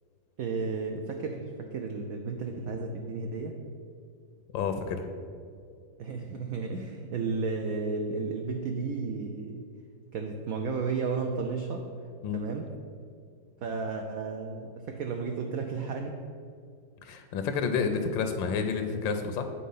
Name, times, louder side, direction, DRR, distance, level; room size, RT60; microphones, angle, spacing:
voice 1, 0.4-3.6 6.0-9.6 10.1-11.8 12.3-12.7 13.6-16.2, right 4 dB, 75° right, 3 dB, 0.8 m, -33 dB
voice 2, 4.5-5.1 12.2-12.4 17.0-19.4, left 5 dB, 85° left, 7 dB, 1.3 m, -29 dB
8.6 x 4.1 x 5.4 m, 2.2 s
omnidirectional pair, 2.0 m